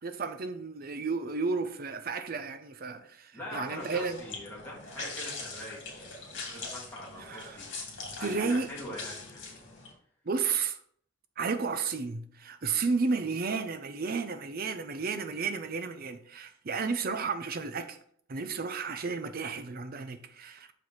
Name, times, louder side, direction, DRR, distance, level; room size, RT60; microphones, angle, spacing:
voice 1, 0.0-4.2 7.2-7.6 8.2-8.7 10.2-10.8 11.4-18.0 18.3-20.7, right 4 dB, 45° right, 0.6 m, -32 dB
voice 2, 3.3-7.7 8.2-9.6, left 1 dB, 10° left, 2.5 m, -43 dB
sound 1, 3.7-9.9, left 3 dB, 60° left, 2.2 m, -42 dB
6.4 x 4.8 x 4.2 m
head